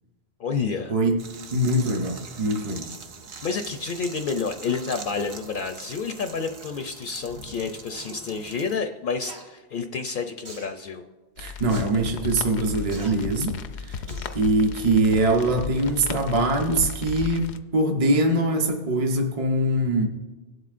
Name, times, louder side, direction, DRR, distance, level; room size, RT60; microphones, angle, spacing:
voice 1, 0.4-0.9 3.4-11.0, left 5 dB, 60° left, 7 dB, 0.7 m, -29 dB
sound 1, 1.2-8.8, right 4 dB, 70° right, 1.0 m, -42 dB
voice 2, 1.5-2.9 11.4-14.0 14.3-20.0, right 1 dB, 35° right, 2 dB, 0.8 m, -23 dB
sound 2, 8.0-8.2 9.2-9.4 10.5-10.8 11.7-11.9 12.9-13.1 14.1-14.4 14.8-14.9, right 2 dB, 90° right, 2.0 m, -42 dB
sound 3, 11.4-17.6, left 5 dB, 90° left, 0.9 m, -35 dB
18.5 x 7.9 x 2.5 m, 1.2 s
omnidirectional pair, 1.1 m